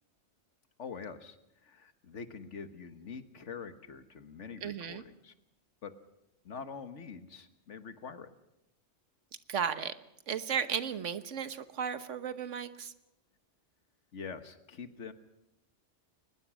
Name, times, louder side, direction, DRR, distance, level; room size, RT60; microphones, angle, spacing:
voice 1, 0.8-5.3 5.8-6.0 6.4-8.3 14.1-15.1, left 5 dB, 75° left, 10 dB, 1.7 m, -45 dB
voice 2, 4.6-5.0 9.5-9.9 10.3-12.9, right 7 dB, 85° right, 11 dB, 1.4 m, -34 dB
22.5 x 20.0 x 6.2 m, 0.88 s
omnidirectional pair, 1.2 m